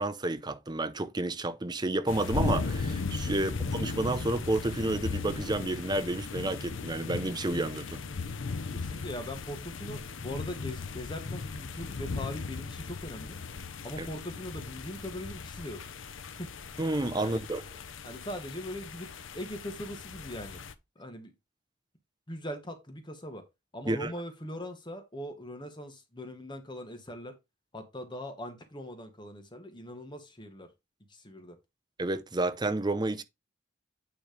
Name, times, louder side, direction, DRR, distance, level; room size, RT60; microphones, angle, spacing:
voice 1, 0.0-8.0 14.0-14.1 16.8-17.6 23.9-24.1 32.0-33.2, right 2 dB, 20° right, 0.7 m, -30 dB
sound 1, 2.1-20.7, left 4 dB, 75° left, 0.7 m, -37 dB
voice 2, 8.7-13.4 13.8-15.8 16.4-16.5 17.2-17.4 18.0-19.1 19.3-20.6 20.9-21.3 22.3-23.4 23.7-27.4 27.7-30.7 31.1-31.6, equal, 25° left, 1.2 m, -41 dB
9.2 x 3.3 x 5.0 m
head